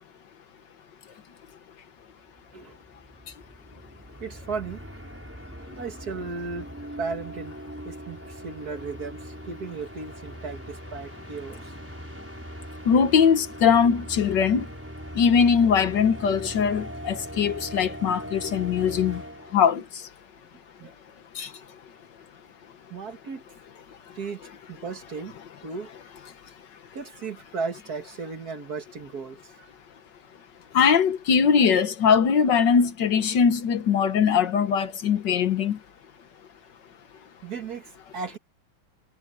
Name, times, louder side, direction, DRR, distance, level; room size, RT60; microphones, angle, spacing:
sound 1, 2.1-2.2 2.4-19.8, equal, 5° right, 5.1 m, -40 dB
voice 1, 4.2-4.8 5.8-6.7 7.0-7.6 7.9-11.7 20.8-20.9 22.9-23.4 24.1-25.4 25.6-25.9 26.9-29.7 37.4-38.4, right 4 dB, 50° right, 2.1 m, -35 dB
voice 2, 12.8-14.7 15.1-19.2 19.5-19.8 21.3-21.5 30.7-35.8, left 6 dB, 65° left, 1.7 m, -21 dB
omnidirectional pair, 2.2 m